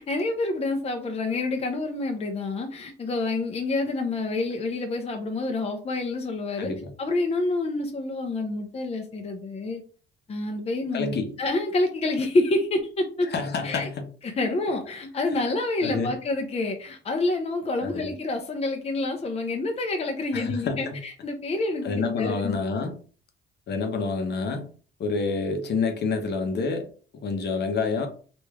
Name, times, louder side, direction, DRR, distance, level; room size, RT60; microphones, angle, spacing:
voice 1, 0.0-6.7 7.0-9.8 10.3-13.3 13.6-13.9 14.2-22.6, left 2 dB, 30° left, 0.6 m, -28 dB
voice 2, 6.6-6.9 10.9-11.3 13.2-14.1 15.8-16.1 17.8-18.1 20.3-21.0 21.8-22.9 23.7-24.7 25.0-26.9 27.2-28.1, left 4 dB, 55° left, 0.8 m, -28 dB
3.2 x 2.6 x 3.5 m
cardioid pair, 90°, 20 cm